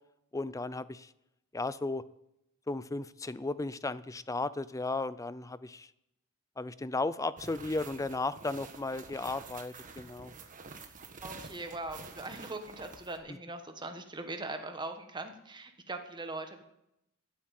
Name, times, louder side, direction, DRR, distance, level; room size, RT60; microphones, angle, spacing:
voice 1, 0.3-1.1 1.5-2.0 2.7-5.9 6.6-10.3 13.3-13.4, left 3 dB, 15° left, 17 dB, 0.4 m, -35 dB
sound 1, 7.4-13.2, right 4 dB, 35° right, 1.5 m, -48 dB
voice 2, 11.2-16.6, right 2 dB, 20° right, 6 dB, 1.5 m, -41 dB
14.5 x 8.6 x 9.2 m, 0.84 s
head